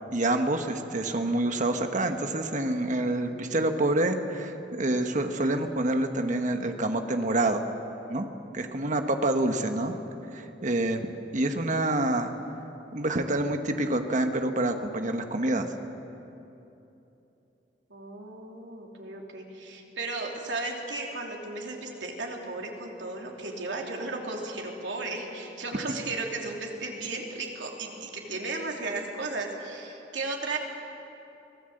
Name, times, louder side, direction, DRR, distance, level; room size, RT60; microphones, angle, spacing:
voice 1, 0.1-7.6 8.1-8.3 8.5-9.9 10.3-11.1 11.3-12.3 12.9-15.7, right 1 dB, 45° right, 6 dB, 1.3 m, -27 dB
voice 2, 17.9-30.6, right 3 dB, 90° right, 0 dB, 3.1 m, -35 dB
24.5 x 17.0 x 7.9 m, 3.0 s
head